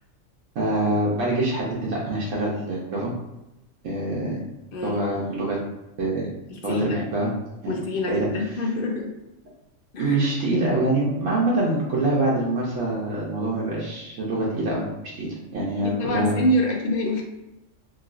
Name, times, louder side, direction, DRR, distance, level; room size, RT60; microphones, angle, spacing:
voice 1, 0.5-3.1 3.8-4.4 4.8-5.6 6.0-6.2 6.6-7.3 7.6-7.8 8.1-8.3 10.0-16.4, right 2 dB, 75° right, -5 dB, 1.1 m, -25 dB
voice 2, 6.5-7.0 7.7-9.1 9.9-10.3 15.8-17.2, left 1 dB, 65° left, 1 dB, 0.6 m, -26 dB
3.0 x 2.7 x 2.5 m, 0.92 s
omnidirectional pair, 1.3 m